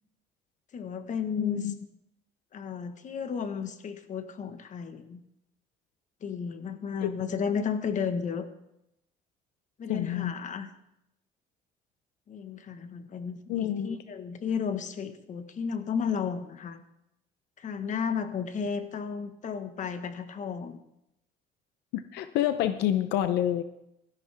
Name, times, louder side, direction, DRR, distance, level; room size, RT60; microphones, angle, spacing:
voice 1, 0.7-1.7 2.5-5.2 6.2-8.5 9.8-10.7 12.3-16.8 17.6-20.8, left 6 dB, 45° left, 9 dB, 1.4 m, -33 dB
voice 2, 1.4-1.7 7.0-7.1 9.9-10.3 13.5-14.0 21.9-23.6, left 11 dB, 85° left, 10 dB, 0.7 m, -28 dB
17.0 x 13.5 x 3.5 m, 0.84 s
cardioid pair, 110°, 17 cm